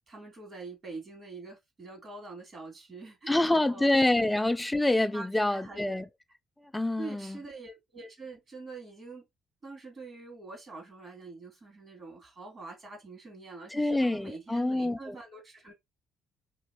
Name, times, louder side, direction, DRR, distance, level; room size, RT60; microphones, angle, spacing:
voice 1, 0.1-3.9 5.1-6.0 7.0-9.3 9.6-15.7, right 3 dB, 45° right, 2.7 m, -45 dB
voice 2, 3.3-6.1 6.6-7.4 13.7-15.2, left 1 dB, 10° left, 0.4 m, -27 dB
3.9 x 3.1 x 3.0 m
cardioid pair, 90°, 0 cm